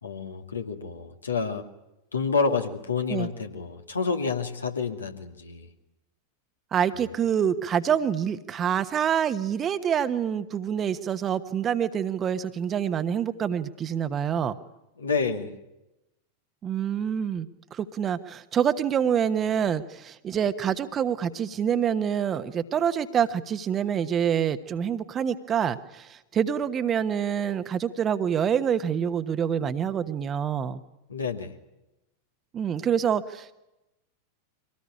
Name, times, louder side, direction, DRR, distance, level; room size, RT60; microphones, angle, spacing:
voice 1, 0.0-1.7 2.1-5.7 15.0-15.6 31.1-31.5, left 5 dB, 75° left, 5 dB, 2.3 m, -29 dB
voice 2, 6.7-14.6 16.6-30.8 32.5-33.5, right 8 dB, 25° right, 11 dB, 1.3 m, -26 dB
24.5 x 18.5 x 10.0 m, 0.94 s
figure-of-eight pair, 90°, 0 cm